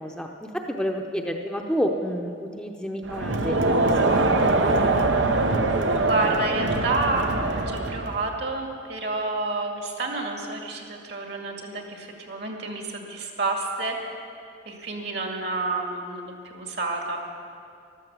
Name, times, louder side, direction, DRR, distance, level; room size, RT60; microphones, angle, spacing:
voice 1, 0.0-4.9, equal, 5° left, 2 dB, 0.7 m, -30 dB
Crowd, 3.1-8.2, right 2 dB, 85° right, 1.0 m, -23 dB
voice 2, 6.0-14.0 14.7-17.2, right 2 dB, 60° right, 2 dB, 2.1 m, -29 dB
14.0 x 12.5 x 7.0 m, 2.6 s
head